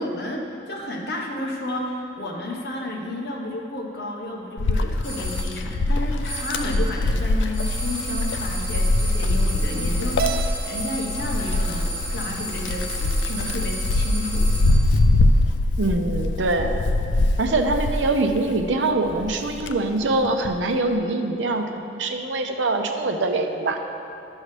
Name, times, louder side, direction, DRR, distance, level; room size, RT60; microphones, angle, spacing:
voice 1, 0.0-14.5, left 1 dB, 60° left, -1 dB, 1.1 m, -31 dB
Wind, 4.6-18.7 19.1-20.6, left 2 dB, 85° left, 0.4 m, -23 dB
sound 1, 5.0-5.5 6.2-6.9 7.5-14.9, equal, 15° left, 1.6 m, -33 dB
Keyboard (musical), 10.2-12.5, right 9 dB, 55° right, 0.3 m, -33 dB
voice 2, 15.8-16.8 17.4-23.8, right 2 dB, 90° right, 5 dB, 0.7 m, -23 dB
11.5 x 6.3 x 3.3 m, 2.8 s
head